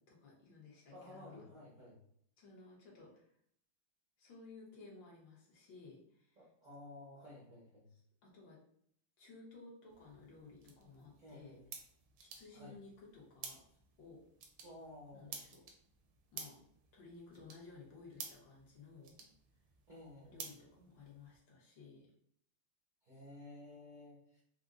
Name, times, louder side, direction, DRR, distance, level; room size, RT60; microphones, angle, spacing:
voice 1, 0.1-1.5 2.4-3.4 4.2-6.4 7.9-8.6 9.2-11.6 12.2-13.6 14.0-14.2 15.1-15.7 16.3-16.6 16.9-19.2 20.3-22.1, left 3 dB, 65° left, -3 dB, 1.6 m, -56 dB
voice 2, 0.9-2.0 6.4-7.9 11.2-11.7 12.5-12.8 14.6-15.4 19.9-20.6 23.0-24.4, left 1 dB, 60° right, -7 dB, 0.4 m, -54 dB
sound 1, 9.9-21.4, right 6 dB, 85° right, 1.5 m, -54 dB
4.9 x 2.0 x 2.4 m, 0.67 s
omnidirectional pair, 2.4 m